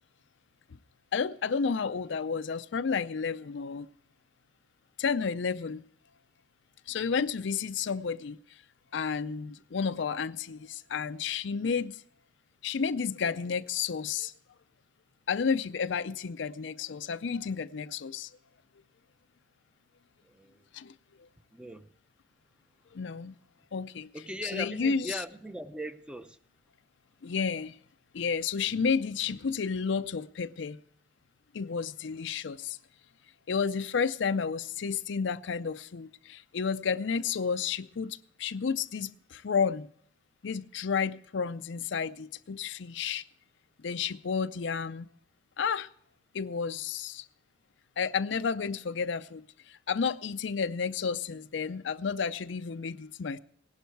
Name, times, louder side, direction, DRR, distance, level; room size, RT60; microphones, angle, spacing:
voice 1, 1.1-3.9 5.0-5.8 6.9-8.6 8.9-12.0 12.6-14.3 15.3-18.3 20.7-20.9 22.9-23.3 23.7-24.1 24.4-25.2 27.2-27.8 28.1-30.8 31.5-32.8 33.5-39.9 40.4-43.2 43.8-45.1 45.6-45.9 46.3-47.3 48.0-53.4, left 6 dB, 70° left, 0.5 m, -31 dB
voice 2, 20.2-20.6 21.5-21.9 24.1-26.4 28.7-28.9, equal, 5° right, 0.6 m, -40 dB
17.5 x 11.5 x 4.6 m
head